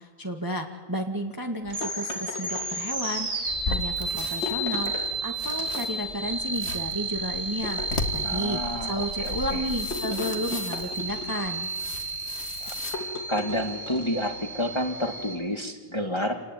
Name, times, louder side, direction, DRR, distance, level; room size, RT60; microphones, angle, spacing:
voice 1, 0.0-7.8 8.1-11.7, equal, 10° right, 3 dB, 1.7 m, -32 dB
sound 1, 1.7-15.3, right 2 dB, 45° right, 5.6 m, -32 dB
sound 2, 1.8-3.2 4.4-5.1 5.5-6.2 7.6-8.5 9.9-11.7 12.9-14.2, left 2 dB, 90° left, 3.6 m, -37 dB
sound 3, 3.4-13.0, left 3 dB, 35° left, 2.1 m, -37 dB
voice 2, 8.2-9.7 12.6-16.4, equal, 15° left, 4 dB, 2.0 m, -30 dB
28.5 x 19.5 x 9.2 m, 1.3 s
omnidirectional pair, 1.9 m